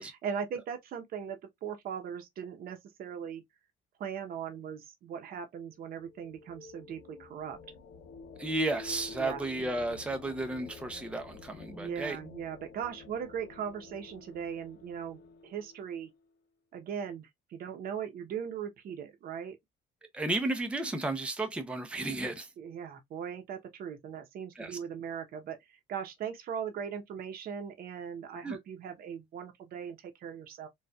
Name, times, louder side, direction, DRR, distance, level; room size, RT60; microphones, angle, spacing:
voice 1, 0.0-3.4 4.0-7.6 9.2-9.5 11.7-16.1 16.7-19.6 22.6-30.7, right 7 dB, 60° right, 0.9 m, -39 dB
sound 1, 5.7-16.3, left 4 dB, 80° left, 0.7 m, -50 dB
voice 2, 8.4-12.2 20.1-22.5 24.6-24.8 28.4-28.6, right 2 dB, 5° right, 0.6 m, -33 dB
4.2 x 2.4 x 2.3 m
cardioid pair, 110°, 17 cm